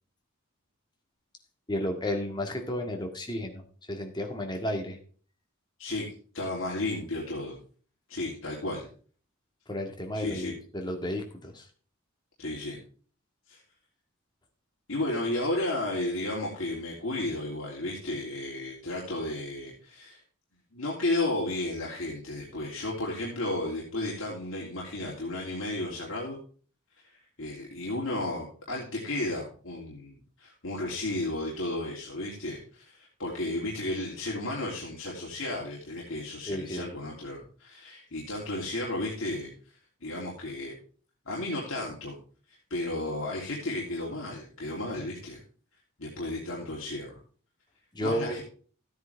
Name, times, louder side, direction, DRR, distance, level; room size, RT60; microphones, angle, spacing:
voice 1, 1.7-5.0 9.7-11.7 36.5-36.9 47.9-48.4, left 1 dB, 20° left, 3 dB, 1.9 m, -33 dB
voice 2, 6.3-7.6 8.1-8.9 10.1-10.5 12.4-12.8 13.5-13.6 14.9-20.2 20.7-26.4 27.1-39.5 40.0-40.7 41.2-42.2 42.7-45.4 46.0-47.1 48.0-48.4, left 2 dB, 65° left, -4 dB, 3.1 m, -33 dB
14.0 x 9.5 x 3.5 m, 0.41 s
head